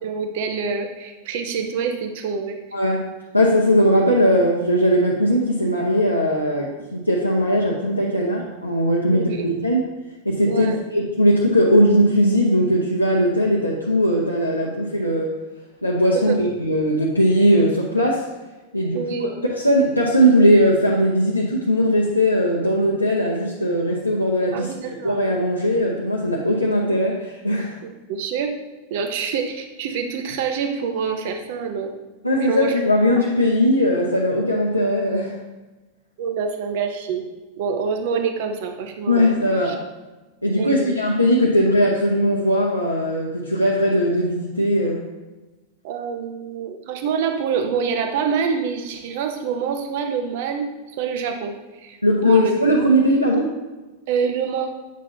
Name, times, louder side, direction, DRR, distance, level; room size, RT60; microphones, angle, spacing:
voice 1, 0.0-2.6 9.1-9.4 10.5-10.8 16.1-16.4 18.9-19.4 24.5-25.2 27.8-28.5 28.9-31.9 32.4-32.7 36.2-37.2 37.6-39.3 39.6-39.7 40.6-40.9 45.8-50.7 51.0-52.6 54.1-54.7, right 6 dB, 50° right, 5 dB, 0.8 m, -26 dB
voice 2, 2.7-3.1 3.3-9.8 10.2-15.3 15.8-18.2 18.7-24.7 25.0-27.7 32.2-35.4 39.1-39.8 40.4-45.0 52.0-53.6, equal, 90° left, -4 dB, 0.8 m, -19 dB
8.2 x 6.2 x 2.8 m, 1.2 s
figure-of-eight pair, 90°, 0 cm